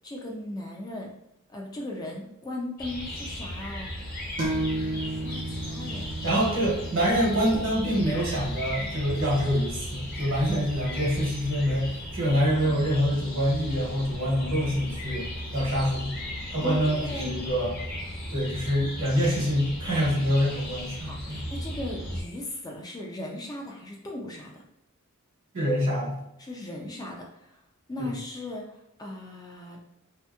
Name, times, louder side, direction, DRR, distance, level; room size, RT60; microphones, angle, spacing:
voice 1, 0.0-1.1 1.5-3.9 5.0-6.1 12.7-12.8 15.8-15.9 16.6-17.3 21.0-24.6 26.4-27.5 27.9-29.8, left 1 dB, 20° left, 0 dB, 0.3 m, -38 dB
sound 1, 2.8-22.2, equal, 45° left, 0.7 m, -36 dB
sound 2, 4.4-11.9, right 1 dB, 40° right, 0.6 m, -36 dB
voice 2, 6.2-15.3 15.5-17.8 18.3-21.4 25.5-26.2 28.0-28.1, equal, 65° right, -4 dB, 1.1 m, -26 dB
2.8 x 2.5 x 2.3 m, 0.85 s
head